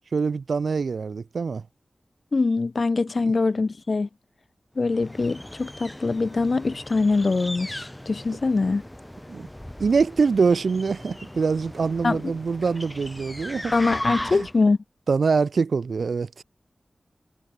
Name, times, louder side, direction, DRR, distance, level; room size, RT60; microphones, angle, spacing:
voice 1, 0.1-1.6 9.3-9.5 9.8-13.7 14.3-14.5 15.1-16.4, right 5 dB, 85° right, 2.0 m, -24 dB
voice 2, 2.3-4.1 4.8-8.8 12.0-12.3 13.7-14.8, left 3 dB, 55° left, 3.9 m, -23 dB
sound 1, 4.8-14.7, left 1 dB, 10° left, 5.0 m, -37 dB
wide cardioid pair, 70°, 0 cm